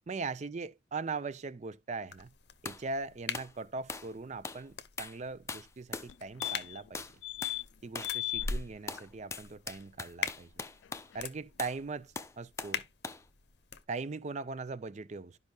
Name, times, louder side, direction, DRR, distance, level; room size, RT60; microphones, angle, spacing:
voice 1, 0.1-2.3 2.6-7.1 7.8-10.5 11.1-12.8 13.9-15.4, right 4 dB, 40° right, 0.4 m, -40 dB
sound 1, 2.1-13.8, left 5 dB, 60° left, 0.7 m, -44 dB
sound 2, 2.7-2.8 3.3-3.5 3.9-4.1 4.4-4.6 5.0-5.2 5.5-6.1 6.4-6.7 6.9-7.2 7.4-7.6 8.0-8.2 8.5-11.1 11.6-11.8 12.2-12.8 13.0-13.3, left 4 dB, 15° left, 0.5 m, -41 dB
sound 3, 6.1-6.2 6.4-6.9 7.2-7.6 8.0-8.5 10.8-10.9 11.1-11.2, left 18 dB, 75° left, 0.3 m, -36 dB
12.0 x 5.4 x 2.3 m
head